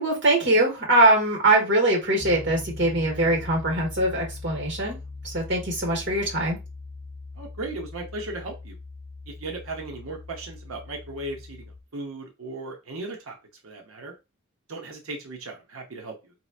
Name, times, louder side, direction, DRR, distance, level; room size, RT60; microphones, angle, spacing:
voice 1, 0.0-5.0 5.2-6.6, right 1 dB, 55° right, -2 dB, 1.8 m, -22 dB
Piano, 2.2-11.8, left 3 dB, 15° left, 0.7 m, -40 dB
voice 2, 7.4-8.8 9.3-11.6 11.9-13.4 13.6-14.1 14.7-16.3, right 2 dB, 85° right, 2 dB, 0.8 m, -36 dB
4.1 x 2.9 x 2.4 m, 0.25 s
head